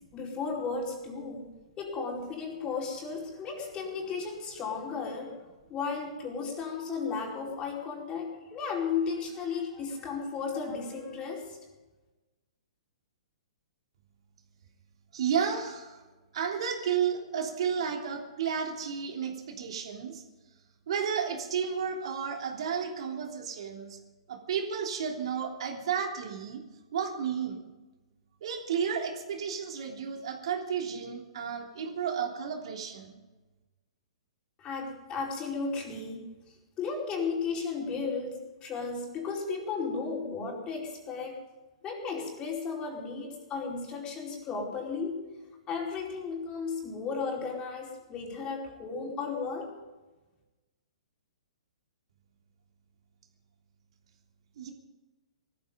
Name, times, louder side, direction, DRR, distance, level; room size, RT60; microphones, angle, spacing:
voice 1, 0.1-1.5 1.8-5.4 5.7-11.6 34.6-41.3 41.8-45.2 45.7-49.7, left 5 dB, 25° left, -1 dB, 4.7 m, -34 dB
voice 2, 15.1-16.0 16.3-20.2 20.9-24.0 24.3-26.6 26.9-27.6 28.4-33.2 54.6-54.7, right 7 dB, 60° right, 2 dB, 3.3 m, -32 dB
19.5 x 14.0 x 5.3 m, 1.2 s
hypercardioid pair, 125°, 3 cm